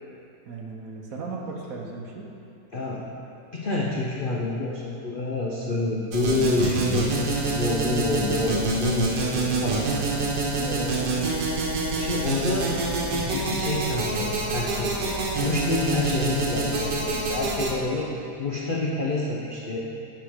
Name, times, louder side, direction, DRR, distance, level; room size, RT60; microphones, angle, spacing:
voice 1, 0.5-2.3 10.5-11.0, right 4 dB, 55° right, -1 dB, 1.1 m, -36 dB
voice 2, 2.7-3.0 3.5-7.1 7.5-9.9 11.6-12.8 13.1-15.0 15.4-18.1 18.4-19.8, left 2 dB, 70° left, -3 dB, 0.4 m, -28 dB
sound 1, 6.1-17.7, right 2 dB, 70° right, 1.8 m, -26 dB
9.9 x 5.7 x 5.0 m, 2.7 s
omnidirectional pair, 2.0 m